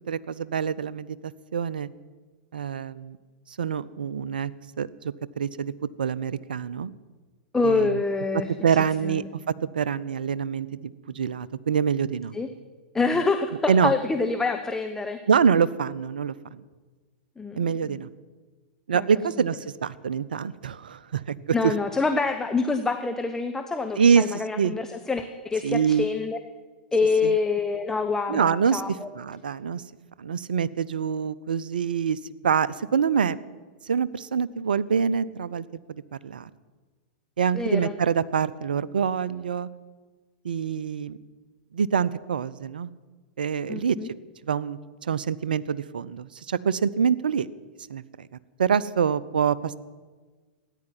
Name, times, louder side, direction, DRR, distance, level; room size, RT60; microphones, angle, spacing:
voice 1, 0.1-1.9 2.5-3.2 3.6-4.5 4.8-6.9 7.6-8.0 8.6-12.3 13.7-13.9 15.3-16.6 17.5-18.1 18.9-21.7 24.0-24.7 25.6-26.1 27.2-27.3 28.3-29.8 30.2-33.4 33.8-36.5 37.4-39.7 40.4-41.2 41.7-42.9 43.4-44.0 44.4-47.5 47.9-48.3 48.6-49.8, right 7 dB, 75° right, 18 dB, 0.6 m, -25 dB
voice 2, 7.5-8.5 9.0-9.3 12.3-12.5 12.9-15.2 17.4-17.6 17.9-18.0 18.9-19.0 21.5-26.4 26.9-29.1 37.5-37.9 43.7-44.1, left 4 dB, 10° left, 6 dB, 0.9 m, -26 dB
14.0 x 9.9 x 9.6 m, 1.4 s
figure-of-eight pair, 100°, 5 cm